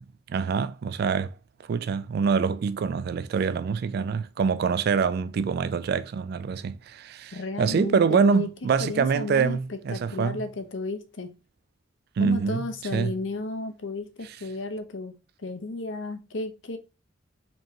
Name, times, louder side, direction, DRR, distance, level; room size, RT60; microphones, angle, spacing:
voice 1, 0.0-1.3 1.7-10.4 12.2-13.1, right 5 dB, 55° right, 0.3 m, -25 dB
voice 2, 7.3-8.5 8.8-11.3 12.2-16.8, left 3 dB, 75° left, 0.7 m, -33 dB
4.4 x 3.0 x 2.7 m
head